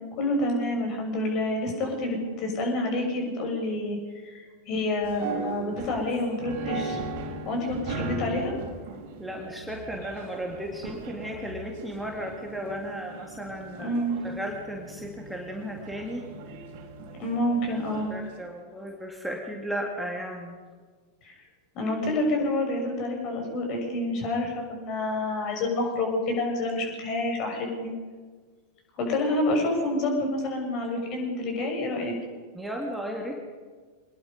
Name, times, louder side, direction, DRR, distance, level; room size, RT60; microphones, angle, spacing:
voice 1, 0.2-4.0 4.2-7.0 7.4-8.5 13.8-14.2 17.2-18.1 21.2-21.4 21.7-27.9 29.0-32.1, left 1 dB, 40° left, 2 dB, 6.7 m, -28 dB
sound 1, 5.0-18.3, right 3 dB, 50° right, 3.8 m, -38 dB
voice 2, 9.2-16.3 17.7-17.8 18.1-20.6 32.5-33.4, equal, ahead, 0 dB, 2.5 m, -35 dB
25.0 x 20.5 x 5.4 m, 1.5 s
figure-of-eight pair, 90°, 0 cm